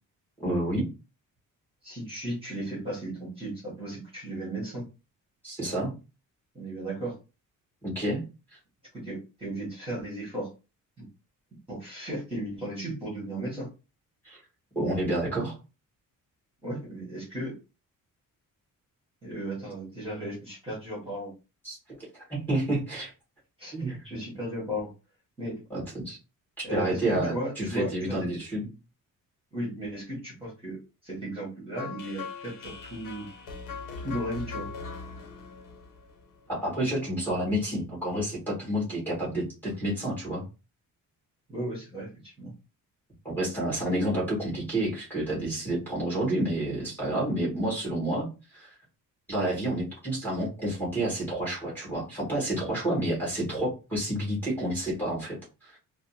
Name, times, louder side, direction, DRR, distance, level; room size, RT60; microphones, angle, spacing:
voice 1, 0.4-0.8 5.4-5.9 7.8-8.2 8.5-8.6 14.2-14.4 14.8-15.6 21.6-23.1 23.7-24.1 25.7-26.2 26.7-28.7 36.5-40.4 43.2-48.7 49.3-55.4 55.6-55.8, right 1 dB, 5° left, -6 dB, 2.0 m, -29 dB
voice 2, 1.8-4.8 6.5-7.1 8.9-10.5 11.7-13.7 16.6-17.5 19.2-21.3 23.6-24.9 25.4-25.6 26.6-28.3 29.5-30.8 31.0-33.3 34.0-34.7 41.5-42.5, right 1 dB, 15° right, -6 dB, 1.8 m, -35 dB
sound 1, 31.8-36.8, left 4 dB, 70° left, 1.0 m, -40 dB
4.1 x 2.1 x 2.8 m, 0.30 s
cardioid pair, 150°, 33 cm